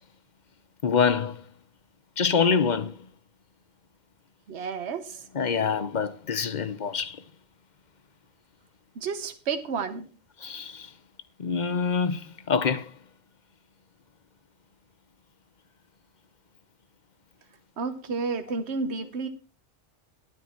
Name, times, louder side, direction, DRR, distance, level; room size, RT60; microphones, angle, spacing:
voice 1, 0.8-1.4 2.2-3.0 5.3-7.2 10.4-10.9 11.4-12.9, left 6 dB, 45° left, 0.8 m, -25 dB
voice 2, 4.5-5.2 8.9-10.1 17.8-19.3, right 5 dB, 70° right, 1.3 m, -31 dB
12.5 x 9.0 x 4.5 m
omnidirectional pair, 1.2 m